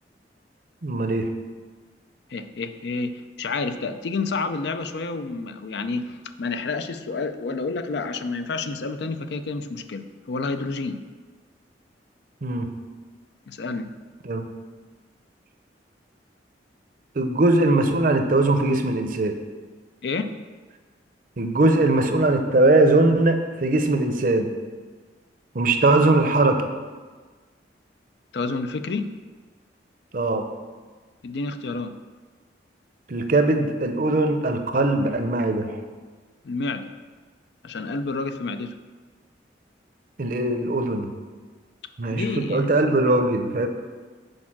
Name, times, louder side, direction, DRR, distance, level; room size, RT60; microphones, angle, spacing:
voice 1, 0.8-1.3 12.4-12.7 14.2-14.4 17.2-19.4 21.4-24.5 25.5-26.6 30.1-30.4 33.1-35.8 40.2-41.1 42.0-43.7, right 2 dB, 50° right, 6 dB, 0.6 m, -20 dB
voice 2, 2.3-11.0 13.5-13.9 20.0-20.4 28.3-29.1 31.2-31.9 36.4-36.9 37.6-38.7 42.1-43.0, left 3 dB, 65° left, 10 dB, 0.4 m, -29 dB
6.5 x 4.7 x 5.9 m, 1.4 s
head